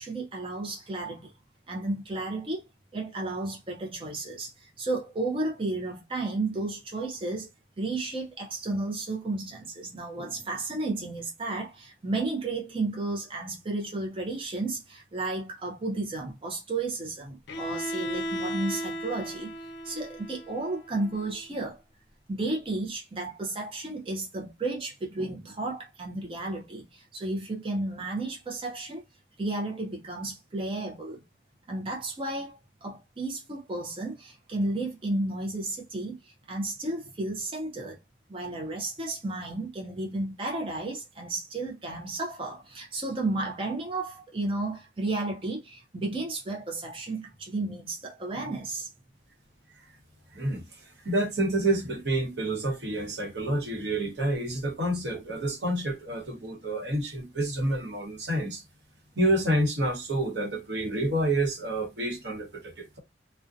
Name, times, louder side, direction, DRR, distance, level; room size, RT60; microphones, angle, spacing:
voice 1, 0.0-1.3 1.7-2.7 2.9-7.5 7.8-21.8 22.3-29.0 29.4-31.2 31.7-38.0 38.3-48.9, right 2 dB, 30° right, 0.5 m, -33 dB
Bowed string instrument, 17.5-21.4, equal, 75° left, 0.4 m, -36 dB
voice 2, 50.3-58.6 59.2-63.0, right 1 dB, 75° right, 0.9 m, -28 dB
2.5 x 2.1 x 2.4 m
head